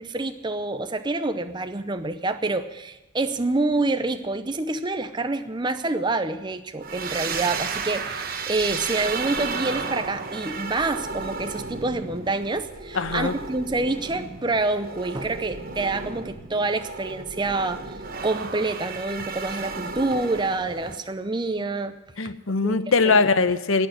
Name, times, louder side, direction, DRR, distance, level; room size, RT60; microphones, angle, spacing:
voice 1, 0.0-18.0 18.2-21.9 22.6-22.8 23.0-23.2, right 2 dB, 20° right, 8 dB, 0.6 m, -27 dB
sound 1, 6.8-21.0, right 4 dB, 45° right, 1.3 m, -33 dB
voice 2, 12.9-13.3 22.2-23.9, left 4 dB, 70° left, 13 dB, 0.9 m, -21 dB
17.5 x 6.5 x 9.9 m, 1.1 s
head